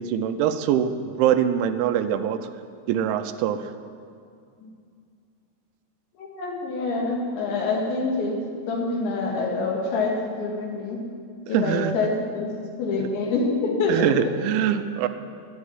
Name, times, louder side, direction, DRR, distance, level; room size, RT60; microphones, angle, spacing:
voice 1, 0.0-2.4 2.9-3.6 11.5-11.9 13.9-15.1, right 9 dB, 85° right, 10 dB, 3.1 m, -23 dB
voice 2, 6.2-8.4 8.7-11.0 11.5-14.1, left 3 dB, 75° left, -1 dB, 4.3 m, -26 dB
11.0 x 10.5 x 9.7 m, 2.3 s
omnidirectional pair, 5.3 m